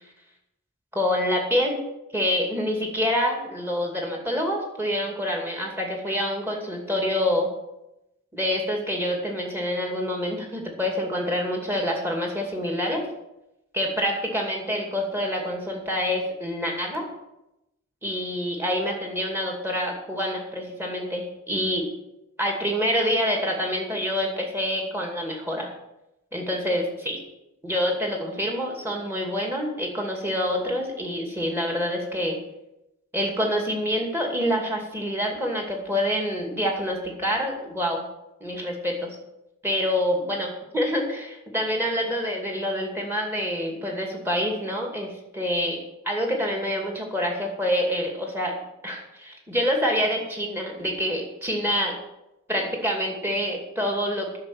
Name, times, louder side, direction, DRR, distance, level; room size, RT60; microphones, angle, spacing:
voice 1, 0.9-1.8 2.1-7.5 8.3-13.0 13.7-17.1 18.0-21.9 22.4-25.7 26.3-27.2 27.6-32.4 33.1-38.0 38.4-39.2 39.6-48.5 48.8-52.0 52.5-54.4, equal, 10° right, 1 dB, 2.4 m, -27 dB
10.5 x 6.7 x 8.9 m, 0.89 s
head